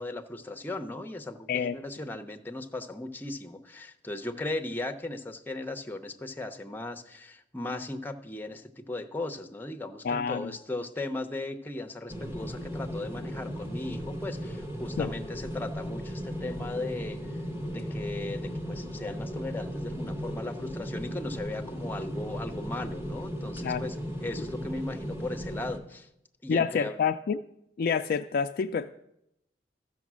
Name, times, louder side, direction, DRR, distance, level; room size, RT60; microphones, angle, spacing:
voice 1, 0.0-24.0 24.2-26.1 26.4-27.0, left 2 dB, 10° left, 5 dB, 0.7 m, -37 dB
voice 2, 10.0-10.5 15.0-15.1 23.6-23.8 26.5-27.4 27.8-28.9, left 6 dB, 55° left, 6 dB, 0.3 m, -28 dB
sound 1, 12.1-25.8, equal, 15° right, 1.3 m, -36 dB
14.0 x 6.3 x 6.1 m, 0.80 s
head